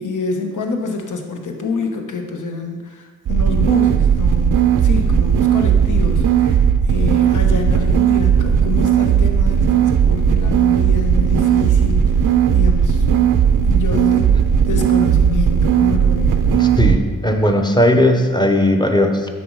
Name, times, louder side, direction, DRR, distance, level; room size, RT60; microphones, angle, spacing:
voice 1, 0.0-13.1 13.6-14.3 14.7-16.4, left 4 dB, 65° left, 3 dB, 1.1 m, -27 dB
sound 1, 3.3-17.0, right 8 dB, 65° right, 0.6 m, -15 dB
voice 2, 16.5-19.3, left 1 dB, 15° left, 4 dB, 0.9 m, -16 dB
7.9 x 6.3 x 4.8 m, 1.5 s
cardioid pair, 90°, 34 cm